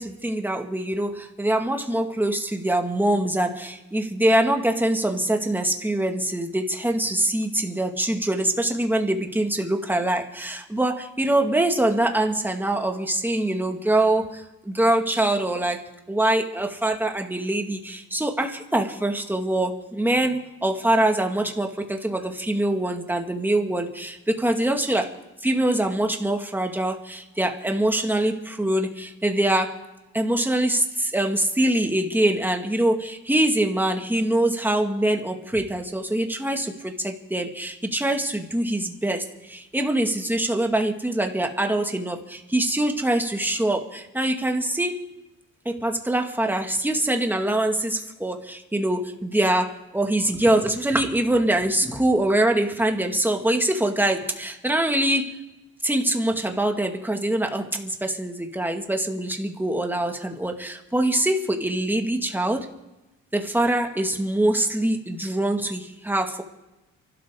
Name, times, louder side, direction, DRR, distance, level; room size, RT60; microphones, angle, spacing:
voice 1, 0.0-25.1 25.4-29.8 30.1-45.1 45.7-55.3 55.8-62.7 63.3-66.4, right 1 dB, 5° right, 3 dB, 2.1 m, -24 dB
29.5 x 12.5 x 3.8 m, 1.0 s
cardioid pair, 90°, 30 cm